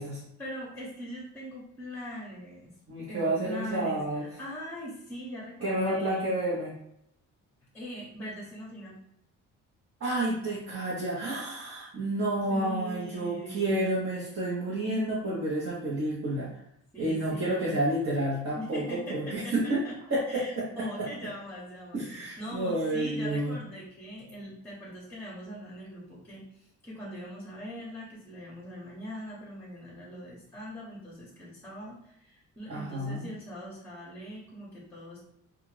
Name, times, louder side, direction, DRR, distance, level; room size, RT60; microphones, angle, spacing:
voice 1, 0.4-2.7 3.1-6.3 7.7-9.0 12.5-13.9 16.9-17.8 18.5-35.2, equal, 5° left, -5 dB, 0.9 m, -41 dB
voice 2, 2.9-4.2 5.6-6.7 10.0-16.5 17.0-19.8 20.1-21.1 21.9-23.5 32.7-33.3, right 1 dB, 50° right, -7 dB, 0.9 m, -30 dB
2.4 x 2.4 x 3.2 m, 0.74 s
cardioid pair, 95°, 31 cm